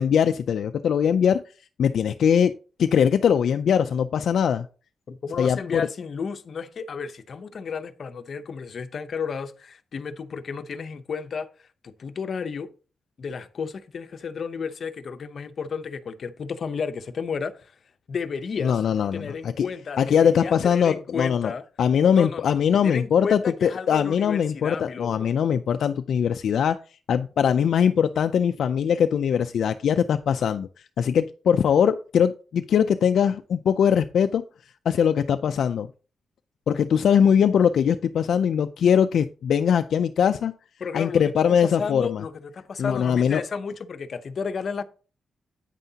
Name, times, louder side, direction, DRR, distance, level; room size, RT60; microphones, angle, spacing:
voice 1, 0.0-1.4 1.8-2.5 2.8-4.7 5.4-5.9 18.6-19.7 20.0-21.5 21.8-26.8 27.1-30.7 31.0-34.4 34.9-35.9 36.7-40.5 40.9-42.2 42.8-43.4, left 8 dB, 70° left, 0.4 m, -21 dB
voice 2, 5.1-12.7 13.2-17.7 18.1-18.8 19.1-21.6 22.1-25.3 40.8-44.8, left 5 dB, 45° left, 0.8 m, -33 dB
9.3 x 9.0 x 2.8 m
wide cardioid pair, 170°, 0 cm